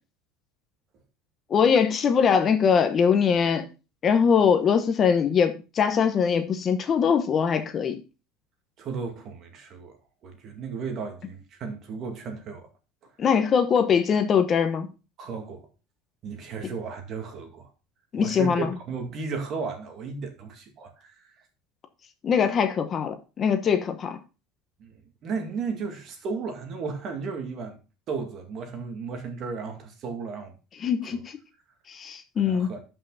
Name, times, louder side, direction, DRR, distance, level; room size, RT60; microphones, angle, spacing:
voice 1, 1.5-3.7 4.0-8.0 13.2-14.9 18.1-18.7 22.2-24.2 30.8-31.4 31.9-32.7, left 6 dB, 30° left, 0.9 m, -22 dB
voice 2, 8.8-10.0 10.2-12.7 15.2-15.7 16.2-17.7 18.2-21.3 24.8-27.8 28.1-30.5 31.1-31.2 32.4-32.8, right 5 dB, 40° right, 2.2 m, -34 dB
11.5 x 5.8 x 4.0 m
cardioid pair, 155°, 0 cm